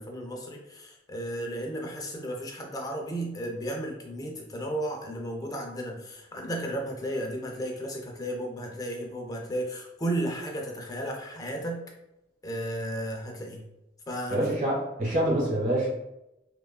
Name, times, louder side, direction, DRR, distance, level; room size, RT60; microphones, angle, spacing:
voice 1, 0.0-11.8 12.4-13.7 14.1-14.4, right 1 dB, 20° left, 1 dB, 0.4 m, -34 dB
voice 2, 14.3-15.9, right 1 dB, 45° right, -6 dB, 1.1 m, -26 dB
2.9 x 2.3 x 2.2 m, 0.90 s
head